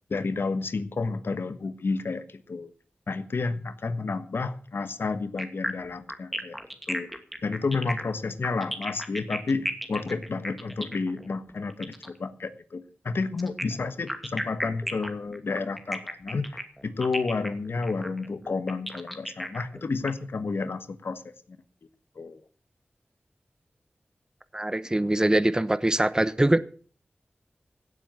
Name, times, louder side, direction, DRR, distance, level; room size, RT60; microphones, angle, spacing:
voice 1, 0.1-2.7 3.1-6.6 6.9-7.1 7.4-21.6 22.2-22.4, left 4 dB, 80° left, 12 dB, 1.3 m, -31 dB
sound 1, 5.4-12.2 13.4-20.1, equal, ahead, 2.4 m, -35 dB
voice 2, 24.5-26.6, right 1 dB, 20° right, 15 dB, 1.0 m, -23 dB
16.5 x 7.7 x 7.7 m, 0.43 s
wide cardioid pair, 60°, 4 cm